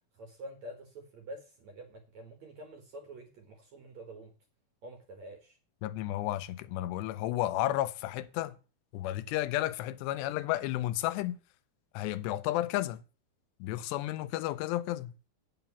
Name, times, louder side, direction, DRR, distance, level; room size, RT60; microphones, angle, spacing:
voice 1, 0.1-4.3 4.8-5.6, right 1 dB, 60° right, 2.0 m, -47 dB
voice 2, 5.8-8.6 8.9-11.4 11.9-13.0 13.6-15.1, left 15 dB, 85° left, 2.8 m, -32 dB
9.0 x 5.8 x 7.0 m
omnidirectional pair, 4.8 m